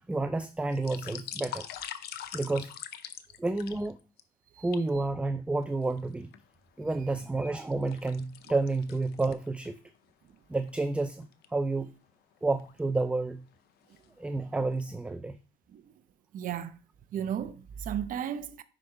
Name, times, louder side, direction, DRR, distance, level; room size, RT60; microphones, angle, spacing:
voice 1, 0.0-1.7 2.2-2.7 3.4-4.0 4.6-6.3 6.8-9.8 10.5-11.9 12.4-13.5 14.2-15.4, right 3 dB, 5° right, 0.3 m, -30 dB
sound 1, 0.6-4.2 4.7-4.9 5.6-6.4 6.9-9.8 10.1-10.2 10.7-10.8 11.2-11.4 12.3-12.8 13.3-13.5 13.8-14.5 14.8-14.9, left 11 dB, 70° left, 0.6 m, -43 dB
voice 2, 16.3-16.8 17.1-18.6, right 9 dB, 55° right, 0.6 m, -34 dB
5.1 x 5.0 x 4.5 m
cardioid pair, 110°, 17 cm